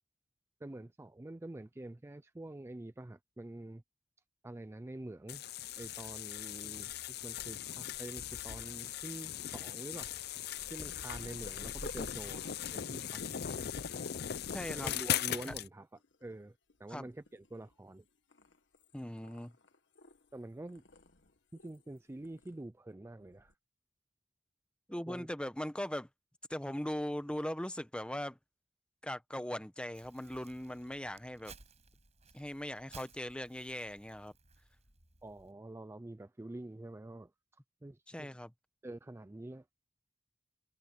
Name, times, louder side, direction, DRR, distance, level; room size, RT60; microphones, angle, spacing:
voice 1, 0.6-3.8 4.4-5.4 5.8-10.1 10.7-13.5 14.7-15.9 16.2-18.0 20.3-20.8 21.5-23.5 25.1-25.3 35.2-37.3 37.8-38.4 38.8-39.6, right 1 dB, 15° right, 0.4 m, -47 dB
sound 1, 5.3-15.7, left 10 dB, 60° left, 0.6 m, -39 dB
Purr, 10.6-15.4 16.0-16.4 16.7-17.9 18.3-20.4 20.7-22.0 22.2-22.5 23.2-23.5, left 2 dB, 85° left, 1.7 m, -52 dB
voice 2, 14.5-14.9 15.4-15.5 16.9-17.1 18.9-19.5 24.9-26.1 26.5-28.4 29.0-31.5 32.3-34.3 38.1-38.5, left 1 dB, 5° left, 1.0 m, -39 dB
Crumpling crinkling, 29.9-35.5, right 4 dB, 40° right, 7.4 m, -59 dB
head